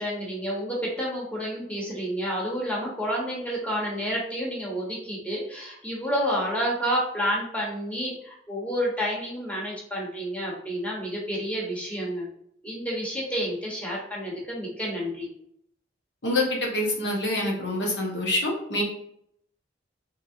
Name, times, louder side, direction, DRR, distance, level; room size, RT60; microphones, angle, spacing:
voice 1, 0.0-12.3 12.6-15.3, equal, 10° left, -4 dB, 1.2 m, -29 dB
voice 2, 16.2-18.8, left 1 dB, 90° left, -2 dB, 1.4 m, -26 dB
4.3 x 3.6 x 2.8 m, 0.70 s
head